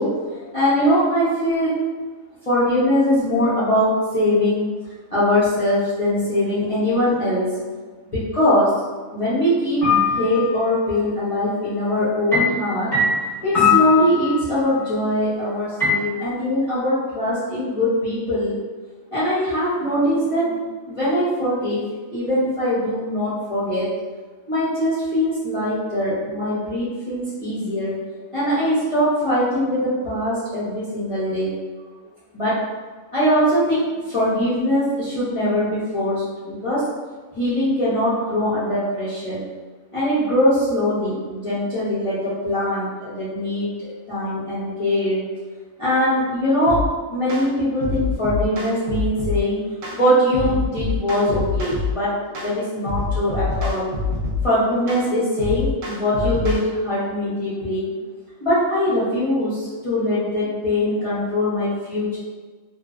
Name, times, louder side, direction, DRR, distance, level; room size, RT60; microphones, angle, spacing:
voice 1, 0.0-1.7 2.5-4.7 5.1-7.6 8.1-8.7 9.1-12.9 13.4-18.6 19.1-21.8 22.1-23.9 24.5-27.9 28.3-31.5 32.3-32.5 33.1-36.8 37.4-39.4 39.9-45.2 45.8-46.8 47.1-49.6 49.9-52.1 52.4-53.9 54.4-57.8 58.4-62.2, left 1 dB, 45° left, -12 dB, 0.4 m, -22 dB
sound 1, 9.8-10.6 12.3-14.7 15.8-15.9, left 4 dB, ahead, 0.6 m, -20 dB
sound 2, 46.7-46.9 47.3-47.5 47.8-49.4 49.8-50.0 50.3-51.9 52.3-52.5 52.9-54.5 54.9-55.0 55.4-56.6, left 3 dB, 70° right, 0.9 m, -25 dB
2.5 x 2.0 x 2.3 m, 1.4 s
omnidirectional pair, 1.5 m